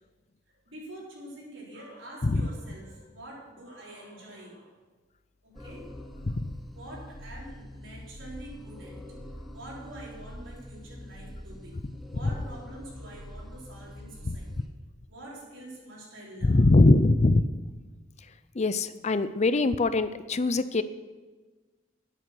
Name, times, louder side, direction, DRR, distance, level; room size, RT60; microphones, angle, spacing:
voice 1, 0.7-4.7 5.4-5.8 6.7-9.0 9.5-11.7 12.1-14.7 15.1-16.7, right 1 dB, 80° right, -5 dB, 4.9 m, -45 dB
sound 1, 5.5-14.7, equal, ahead, 1.0 m, -44 dB
voice 2, 16.4-17.4 18.5-20.8, left 2 dB, 35° left, 13 dB, 0.5 m, -22 dB
11.0 x 9.7 x 6.2 m, 1.3 s
head